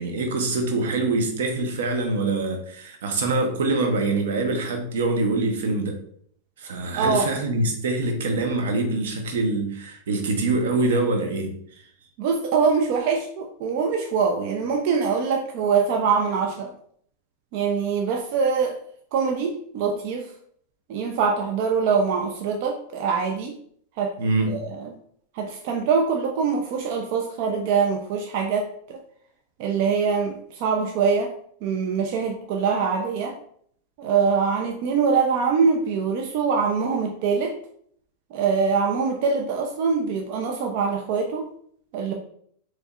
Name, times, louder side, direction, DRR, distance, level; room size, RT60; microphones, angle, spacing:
voice 1, 0.0-6.0 6.6-11.6 24.2-24.6, right 2 dB, 80° right, 4 dB, 0.9 m, -24 dB
voice 2, 6.9-7.3 12.2-16.7 17.5-18.7 19.1-20.3 20.9-23.6 24.0-24.1 24.5-24.9 25.3-29.0 29.6-31.3 31.6-33.4 34.0-37.6 38.3-41.5 41.9-42.1, right 5 dB, 55° right, 2 dB, 0.5 m, -23 dB
4.1 x 3.3 x 2.4 m, 0.63 s
supercardioid pair, 130°, 0 cm